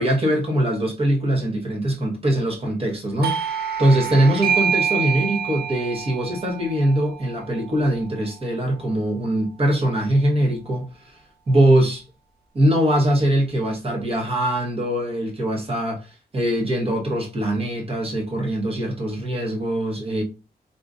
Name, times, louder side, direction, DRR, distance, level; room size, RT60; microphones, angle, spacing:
voice 1, 0.0-11.2 11.5-12.0 12.5-16.1 16.3-20.2, right 1 dB, 35° right, 1.2 m, -22 dB
Doorbell, 3.2-8.5, right 7 dB, 70° right, 0.6 m, -27 dB
3.9 x 2.8 x 2.4 m
wide cardioid pair, 125°, 17 cm